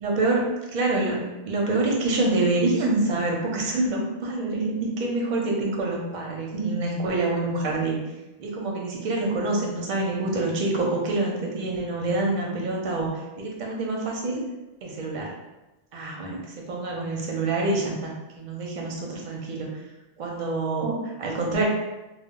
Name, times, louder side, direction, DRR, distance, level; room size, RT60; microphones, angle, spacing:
voice 1, 0.0-8.0 8.4-14.4 14.8-15.3 15.9-16.4 16.7-19.7 20.2-21.7, right 2 dB, 55° right, -1 dB, 0.6 m, -26 dB
2.1 x 2.0 x 3.5 m, 1.0 s
omnidirectional pair, 1.0 m